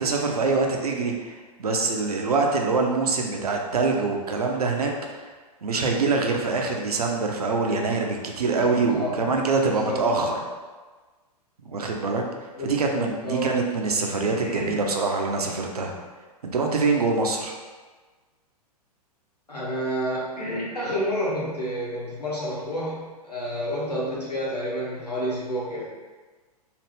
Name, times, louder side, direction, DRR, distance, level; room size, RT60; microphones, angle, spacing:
voice 1, 0.0-5.3 5.6-10.4 11.6-12.2 12.6-15.9 16.4-17.5, right 3 dB, 70° right, 1 dB, 0.6 m, -24 dB
voice 2, 8.6-9.2 9.8-10.0 12.5-13.0 13.2-13.6 14.1-14.8 15.3-16.0 19.5-25.9, equal, 85° left, -6 dB, 1.1 m, -30 dB
2.9 x 2.5 x 3.3 m, 1.3 s
figure-of-eight pair, 105°, 20 cm